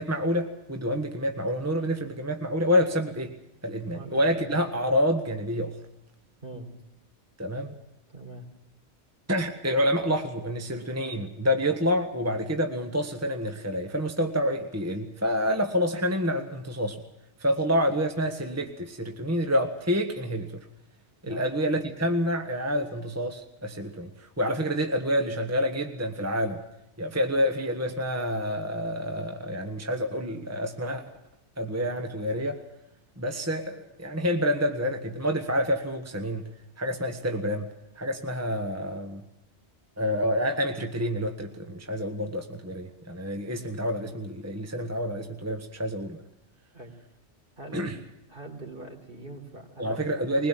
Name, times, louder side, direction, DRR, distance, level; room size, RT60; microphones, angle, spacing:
voice 1, 0.0-3.3 3.6-5.8 7.4-7.7 9.3-17.0 17.4-20.6 21.2-26.6 27.0-31.0 31.6-32.6 33.2-36.4 36.8-37.7 38.0-39.2 40.0-46.2 47.7-48.0 49.8-50.5, equal, 15° right, 5 dB, 1.5 m, -28 dB
voice 2, 3.9-4.8 6.4-6.7 8.1-8.4 21.2-21.5 46.7-46.9 47.6-47.9 48.3-50.5, right 2 dB, 50° right, 3 dB, 4.4 m, -42 dB
22.5 x 20.5 x 7.5 m, 0.88 s
omnidirectional pair, 1.1 m